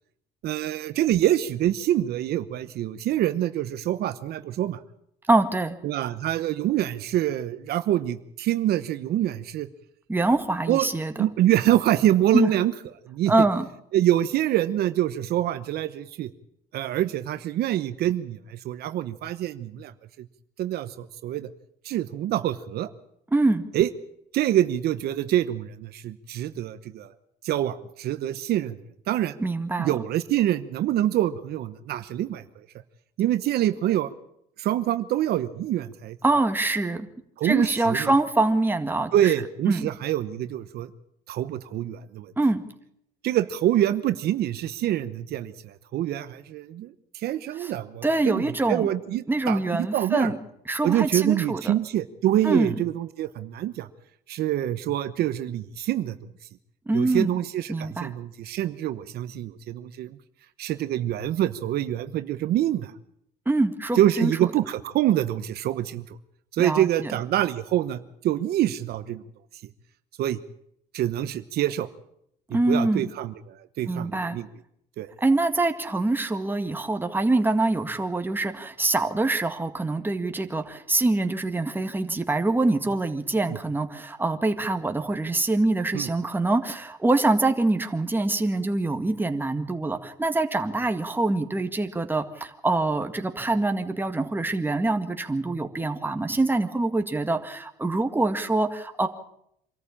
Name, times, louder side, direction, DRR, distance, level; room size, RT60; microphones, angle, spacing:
voice 1, 0.4-4.8 5.8-9.7 10.7-10.9 11.2-12.7 13.0-13.3 13.9-16.3 16.7-19.9 20.2-20.3 20.6-21.5 21.8-22.9 23.7-23.9 24.3-27.1 27.4-28.8 29.1-29.4 29.8-32.4 33.2-34.1 34.6-36.2 37.4-38.1 39.1-40.9 41.3-42.3 43.2-50.3 50.8-53.9 54.3-56.1 56.9-60.2 60.6-62.9 64.0-66.2 66.5-69.2 70.2-70.4 70.9-71.9 72.7-74.5 75.0-75.1 83.5-83.6 85.9-86.1, right 12 dB, 70° right, 12 dB, 1.0 m, -25 dB
voice 2, 5.3-5.8 10.1-11.3 12.3-12.5 13.3-13.7 23.3-23.6 29.4-30.0 36.2-37.1 37.4-39.3 39.7-39.9 42.4-42.6 47.6-47.7 48.0-48.9 49.3-50.4 50.7-51.7 52.4-52.7 56.9-57.3 57.7-58.1 63.5-64.3 66.6-67.1 72.5-73.1 73.9-74.4 75.2-99.1, right 2 dB, 10° right, 6 dB, 1.9 m, -24 dB
25.5 x 14.0 x 8.7 m, 0.74 s
cardioid pair, 110°, 17 cm